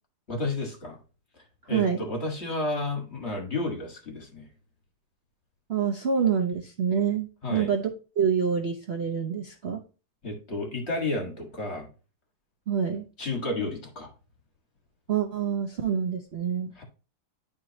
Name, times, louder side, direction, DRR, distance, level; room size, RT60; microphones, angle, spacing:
voice 1, 0.3-1.0 1.7-4.5 7.4-7.7 10.2-11.9 13.2-14.1 16.8-16.9, left 2 dB, 40° left, 1 dB, 1.8 m, -31 dB
voice 2, 1.7-2.0 5.7-9.8 12.7-13.1 15.1-16.7, right 7 dB, 50° right, 2 dB, 0.8 m, -27 dB
10.5 x 3.7 x 2.8 m, 0.34 s
omnidirectional pair, 1.9 m